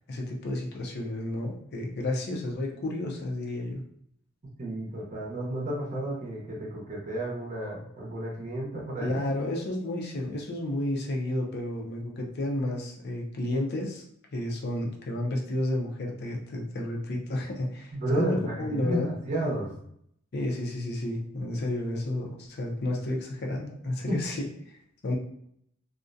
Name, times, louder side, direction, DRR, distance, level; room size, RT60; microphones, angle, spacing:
voice 1, 0.1-3.8 9.0-14.0 14.3-19.1 20.3-24.5 25.0-25.2, left 1 dB, 50° left, 0 dB, 0.5 m, -31 dB
voice 2, 4.6-9.2 17.9-19.7 24.1-24.2, right 1 dB, 35° right, -4 dB, 0.6 m, -31 dB
2.4 x 2.1 x 2.5 m, 0.70 s
head